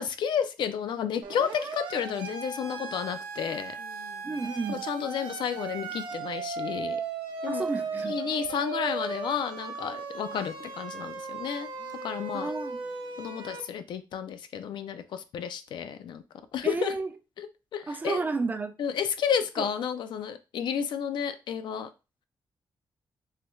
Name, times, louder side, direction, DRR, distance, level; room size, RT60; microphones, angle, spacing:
voice 1, 0.0-3.7 4.7-7.0 7.4-7.7 8.0-11.7 12.0-12.5 13.2-16.2 16.5-17.0 17.4-18.2 18.8-21.9, left 8 dB, 80° left, 0.4 m, -31 dB
Siren, 1.2-13.6, right 4 dB, 85° right, 0.6 m, -37 dB
sound 1, 2.2-2.5 3.8-4.6 5.8-6.3 7.7-9.4 10.1-10.6 11.8-12.3, left 4 dB, 60° left, 0.7 m, -52 dB
voice 2, 4.2-4.8 7.5-8.2 12.3-12.8 16.6-17.1 17.9-18.7, right 3 dB, 25° right, 0.3 m, -31 dB
3.2 x 2.3 x 2.9 m
wide cardioid pair, 150°, 8 cm